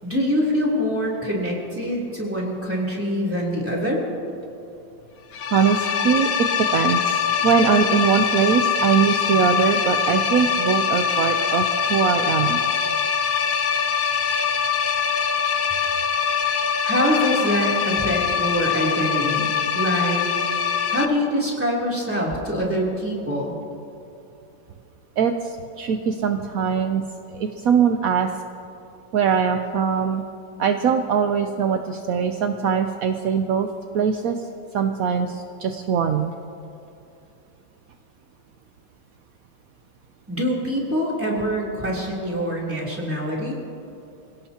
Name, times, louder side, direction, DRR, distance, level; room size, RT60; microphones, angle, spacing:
voice 1, 0.0-4.0 16.8-20.2 20.9-23.5 40.3-43.6, equal, 5° right, -4 dB, 3.2 m, -24 dB
sound 1, 5.3-21.1, left 7 dB, 55° left, 1.0 m, -23 dB
voice 2, 5.5-6.3 6.6-12.6 25.2-27.0 27.4-28.3 29.1-30.2 30.6-33.7 33.9-34.4 34.7-36.3, right 7 dB, 70° right, 6 dB, 0.8 m, -21 dB
26.0 x 17.0 x 2.9 m, 2.7 s
omnidirectional pair, 2.1 m